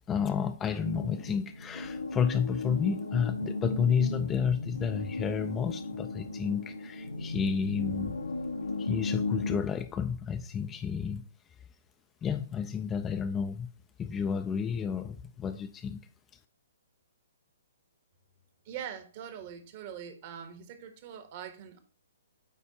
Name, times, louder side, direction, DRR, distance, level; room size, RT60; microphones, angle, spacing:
voice 1, 0.1-8.2 8.8-11.3 12.2-13.7 14.0-16.0, left 7 dB, 15° left, 0.4 m, -31 dB
sound 1, 0.8-9.6, left 2 dB, 85° left, 1.1 m, -35 dB
voice 2, 18.6-21.8, right 9 dB, 40° right, 1.2 m, -42 dB
8.4 x 4.5 x 2.8 m
figure-of-eight pair, 125°, 0 cm